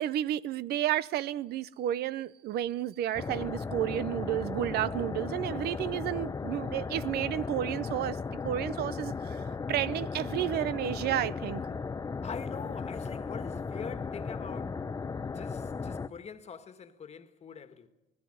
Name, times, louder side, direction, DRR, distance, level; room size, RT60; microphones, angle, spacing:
voice 1, 0.0-8.2 8.4-9.1 9.7-11.6, right 12 dB, 70° right, 0.6 m, -31 dB
sound 1, 3.2-16.1, left 5 dB, 20° left, 0.7 m, -36 dB
voice 2, 12.2-14.9 15.2-17.9, left 6 dB, 40° left, 1.6 m, -44 dB
19.5 x 15.0 x 10.0 m
cardioid pair, 110°, 17 cm